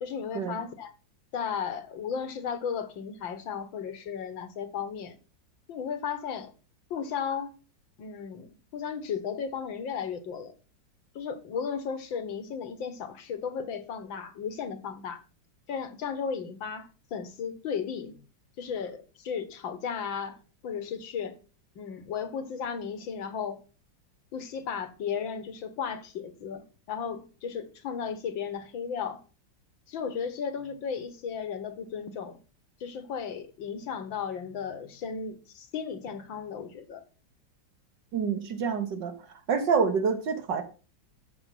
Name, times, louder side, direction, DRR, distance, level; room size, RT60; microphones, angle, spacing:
voice 1, 0.0-0.9 1.3-5.2 5.7-6.5 6.9-7.5 8.0-10.5 11.2-15.2 15.7-18.2 18.6-20.4 20.6-21.4 21.8-23.6 24.3-29.2 29.9-32.4 32.8-37.0, left 7 dB, 85° left, 2.1 m, -35 dB
voice 2, 38.1-39.1 39.5-40.6, right 6 dB, 65° right, 2.2 m, -27 dB
13.5 x 5.8 x 5.9 m
omnidirectional pair, 2.1 m